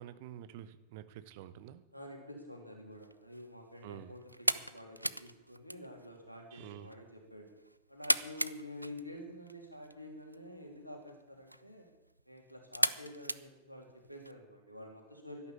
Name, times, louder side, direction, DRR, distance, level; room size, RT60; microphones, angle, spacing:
voice 1, 0.0-1.8 3.8-4.1 6.5-6.9, right 11 dB, 50° right, 13 dB, 1.0 m, -48 dB
voice 2, 1.9-7.5 7.9-11.9 12.3-15.5, left 1 dB, 90° left, 2 dB, 3.2 m, -49 dB
sound 1, 2.9-14.3, right 1 dB, 90° right, 0.5 m, -39 dB
12.0 x 11.5 x 8.5 m, 1.0 s
figure-of-eight pair, 90°, 0 cm